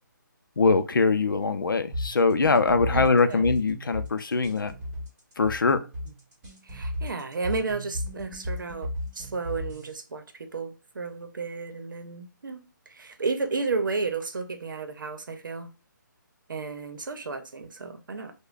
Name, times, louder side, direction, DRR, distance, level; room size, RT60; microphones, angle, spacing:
voice 1, 0.6-4.7 5.4-5.9, left 4 dB, 90° left, 0.5 m, -22 dB
sound 1, 1.9-9.9, left 1 dB, 15° right, 1.4 m, -34 dB
voice 2, 2.9-3.5 6.6-15.7 16.5-18.3, right 4 dB, 75° right, 0.8 m, -33 dB
4.8 x 2.2 x 2.4 m
hypercardioid pair, 160°, 11 cm